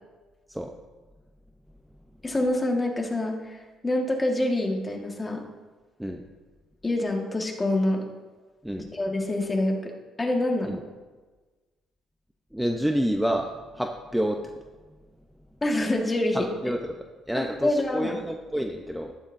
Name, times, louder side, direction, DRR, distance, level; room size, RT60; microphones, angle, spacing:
voice 1, 2.2-5.4 6.8-8.0 8.9-9.9 10.2-10.8 15.6-16.7 17.3-18.2, left 1 dB, 20° left, 2 dB, 1.7 m, -26 dB
voice 2, 12.5-13.5 13.8-14.4 16.3-16.9 17.3-19.1, equal, 5° right, 3 dB, 0.8 m, -28 dB
13.0 x 11.5 x 2.7 m, 1.3 s
cardioid pair, 90°, 0 cm